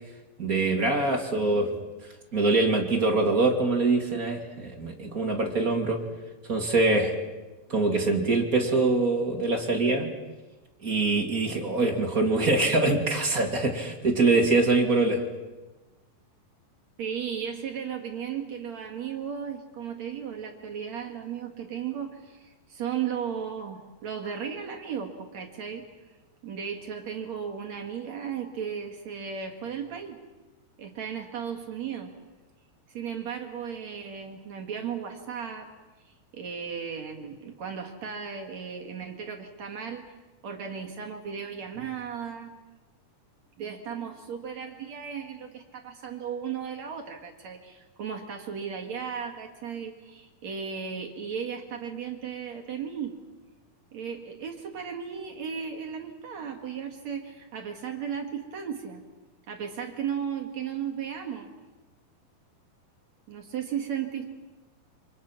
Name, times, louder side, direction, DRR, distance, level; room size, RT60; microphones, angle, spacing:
voice 1, 0.4-1.7 2.3-6.0 6.5-7.1 7.7-10.1 10.8-15.2, right 3 dB, 25° right, 1 dB, 2.6 m, -24 dB
voice 2, 17.0-25.9 26.4-30.2 30.8-32.1 32.9-35.7 36.0-40.1 40.4-42.5 43.6-53.1 53.9-59.0 59.5-61.5 63.3-64.3, right 7 dB, 55° right, 2 dB, 2.8 m, -35 dB
28.5 x 26.5 x 6.1 m, 1.1 s
omnidirectional pair, 4.1 m